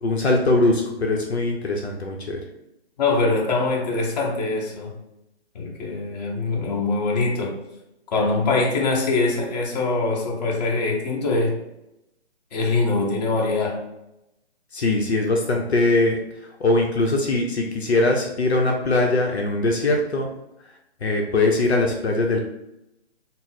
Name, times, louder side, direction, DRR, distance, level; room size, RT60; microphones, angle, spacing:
voice 1, 0.0-2.4 14.7-20.3 21.0-22.4, left 2 dB, 75° left, 1 dB, 0.7 m, -21 dB
voice 2, 3.0-5.0 5.5-7.6 8.1-11.6 12.5-13.8, left 3 dB, 40° left, -2 dB, 1.0 m, -23 dB
3.8 x 2.0 x 4.0 m, 0.87 s
hypercardioid pair, 150°, 33 cm